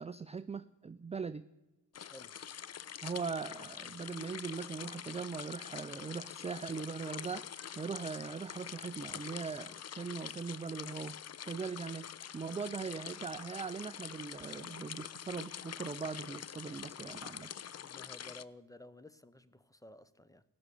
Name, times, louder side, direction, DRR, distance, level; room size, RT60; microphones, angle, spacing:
voice 1, 0.0-1.4 3.0-11.2 11.4-17.5, right 5 dB, 15° right, 14 dB, 0.4 m, -40 dB
sound 1, 1.9-18.4, left 9 dB, 40° left, 0.5 m, -46 dB
voice 2, 2.0-2.3 17.7-20.4, left 1 dB, 10° left, 15 dB, 0.7 m, -54 dB
16.0 x 6.2 x 9.9 m, 1.0 s
cardioid pair, 75°, 40 cm